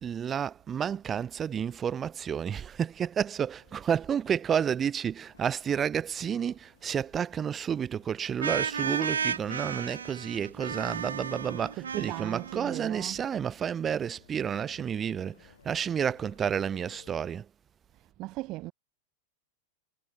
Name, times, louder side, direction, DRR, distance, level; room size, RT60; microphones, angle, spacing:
voice 1, 0.0-17.5, right 8 dB, 25° right, 0.4 m, -31 dB
sound 1, 3.6-17.3, left 8 dB, 65° left, 7.9 m, -61 dB
sound 2, 8.4-13.1, right 6 dB, 70° right, 0.7 m, -34 dB
voice 2, 11.5-13.2 17.9-18.7, right 19 dB, 40° right, 1.7 m, -38 dB
figure-of-eight pair, 90°, 0 cm